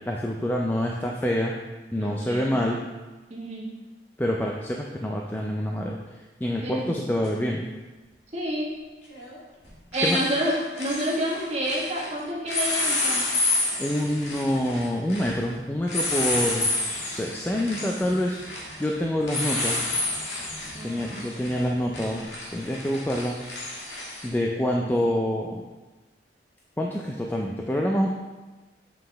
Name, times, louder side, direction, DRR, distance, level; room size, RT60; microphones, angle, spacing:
voice 1, 0.0-1.5 1.9-2.8 4.2-6.0 6.4-7.7 10.0-10.2 13.8-18.4 18.8-19.8 20.8-23.4 24.2-25.6 26.8-28.1, equal, 10° left, 0 dB, 0.4 m, -26 dB
voice 2, 2.0-2.5 3.3-3.6 6.6-6.9 8.3-8.7 9.9-13.2 20.7-21.5 24.8-24.9, equal, 40° right, -4 dB, 1.5 m, -29 dB
sound 1, 7.2-7.3 9.1-9.4 9.6-12.1 12.5-24.3, left 2 dB, 90° left, 1.7 m, -30 dB
7.4 x 5.6 x 3.4 m, 1.2 s
head